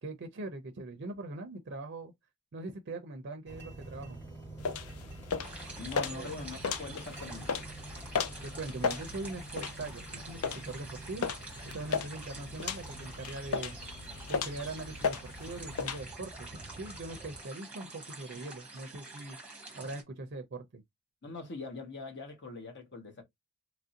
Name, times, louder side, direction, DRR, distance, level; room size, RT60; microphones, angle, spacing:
voice 1, 0.0-2.1 2.5-4.2 6.0-6.3 8.4-11.3 11.7-13.8 14.3-19.4 19.7-20.8, right 2 dB, 50° right, 0.5 m, -41 dB
sound 1, 3.5-17.4, right 2 dB, 10° left, 1.2 m, -48 dB
sound 2, 4.6-16.0, left 5 dB, 75° left, 0.4 m, -37 dB
sound 3, 5.4-20.0, right 3 dB, 5° right, 0.9 m, -48 dB
voice 2, 5.8-7.6 21.2-23.2, left 3 dB, 50° left, 0.9 m, -43 dB
2.9 x 2.5 x 2.7 m
head